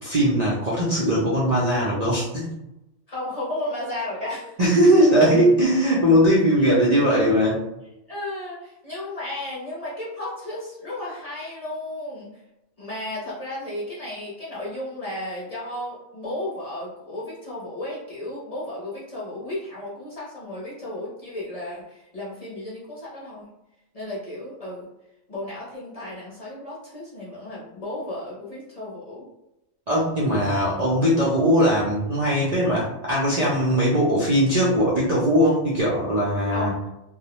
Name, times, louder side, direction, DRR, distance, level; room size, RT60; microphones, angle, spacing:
voice 1, 0.0-2.5 4.6-7.6 29.9-36.7, equal, 75° right, -7 dB, 0.3 m, -20 dB
voice 2, 3.1-4.6 5.0-5.1 6.6-6.8 8.1-12.3 12.8-23.5 23.9-24.9 25.3-29.3 36.5-36.8, left 1 dB, 40° left, -7 dB, 0.6 m, -34 dB
2.3 x 2.0 x 2.9 m, 0.90 s
omnidirectional pair, 1.4 m